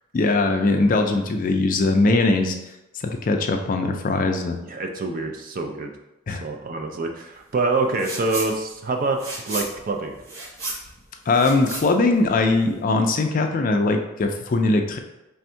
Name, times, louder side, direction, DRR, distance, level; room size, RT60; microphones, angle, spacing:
voice 1, 0.1-2.5 2.9-4.6 6.3-6.4 11.3-15.0, left 3 dB, 40° left, 4 dB, 0.3 m, -21 dB
voice 2, 4.6-5.9 6.3-10.1, right 3 dB, 40° right, 4 dB, 0.4 m, -26 dB
sound 1, 7.9-8.5 8.8-12.8, right 2 dB, 70° right, 1.2 m, -34 dB
3.4 x 2.6 x 4.3 m, 0.93 s
head